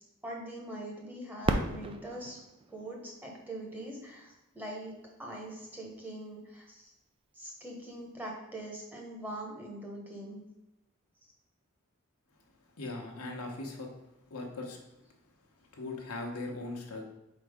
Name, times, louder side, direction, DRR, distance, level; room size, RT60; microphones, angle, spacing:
voice 1, 0.0-2.4 2.7-6.9 7.3-10.4, right 1 dB, 10° right, -1 dB, 1.1 m, -43 dB
Fireworks, 1.4-4.2 4.9-5.0 5.7-6.1 8.0-8.1, right 2 dB, 25° right, 0.4 m, -35 dB
voice 2, 12.7-13.9 14.3-14.8 15.6-17.1, left 2 dB, 75° left, 1 dB, 1.1 m, -39 dB
4.5 x 4.2 x 4.9 m, 0.95 s
head